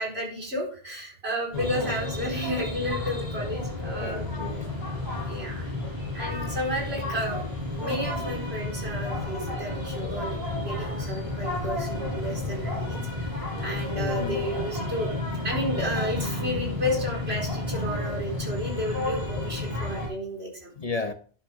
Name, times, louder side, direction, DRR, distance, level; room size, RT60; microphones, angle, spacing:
voice 1, 0.0-4.3 5.3-5.7 6.1-7.4 7.8-15.1 15.4-20.7, equal, 80° right, 4.7 m, -32 dB
voice 2, 1.5-1.9 3.9-4.7 13.9-14.4 20.8-21.1, left 4 dB, 40° left, 0.9 m, -33 dB
sound 1, 1.5-20.1, left 2 dB, 25° right, 7.3 m, -31 dB
12.5 x 10.5 x 3.6 m
omnidirectional pair, 1.1 m